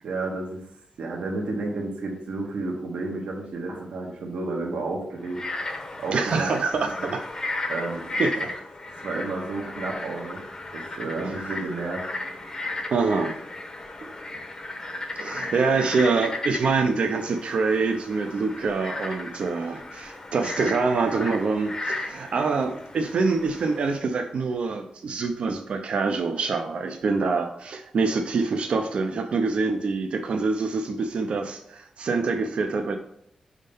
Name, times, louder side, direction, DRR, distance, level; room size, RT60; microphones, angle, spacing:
voice 1, 0.0-0.6 1.0-5.4 6.0-6.5 7.0-7.1 7.6-8.2 8.9-10.4 10.7-12.5, right 3 dB, 90° right, -1 dB, 1.1 m, -31 dB
Frog, 5.2-24.0, left 2 dB, 35° left, 0.9 m, -35 dB
voice 2, 6.1-7.2 8.2-8.3 11.2-11.3 12.9-13.4 15.1-32.9, right 4 dB, 65° right, 5 dB, 0.5 m, -25 dB
5.3 x 3.7 x 5.3 m, 0.73 s
wide cardioid pair, 110°, 2 cm